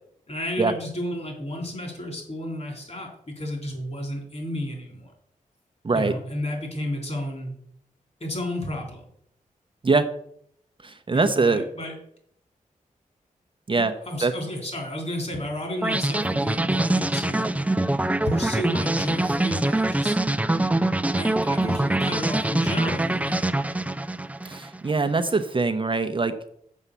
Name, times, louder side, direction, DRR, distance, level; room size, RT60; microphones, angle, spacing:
voice 1, 0.3-5.1 5.9-7.5 8.2-9.0 11.1-11.9 13.8-17.5 18.3-20.1 21.2-23.5, left 1 dB, 50° left, 1 dB, 3.8 m, -32 dB
voice 2, 10.8-11.6 13.7-13.9 14.2-14.3 24.4-26.3, right 3 dB, 35° right, 8 dB, 0.8 m, -22 dB
sound 1, 15.8-24.9, right 2 dB, 10° right, 0.4 m, -24 dB
7.2 x 5.5 x 6.8 m, 0.68 s
cardioid pair, 65°, 14 cm